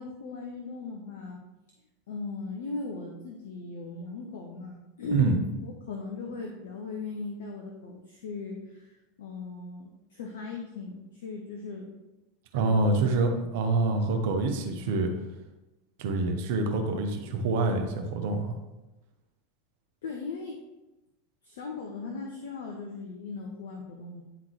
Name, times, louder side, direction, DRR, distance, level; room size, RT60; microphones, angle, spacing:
voice 1, 0.0-1.4 2.1-8.9 9.2-11.9 12.6-13.1 20.0-20.6 21.4-24.2, left 3 dB, 65° left, 2 dB, 0.7 m, -38 dB
voice 2, 12.5-15.1 16.0-18.5, right 3 dB, 60° right, 4 dB, 0.9 m, -26 dB
9.3 x 3.8 x 3.1 m, 1.0 s
figure-of-eight pair, 85°, 0 cm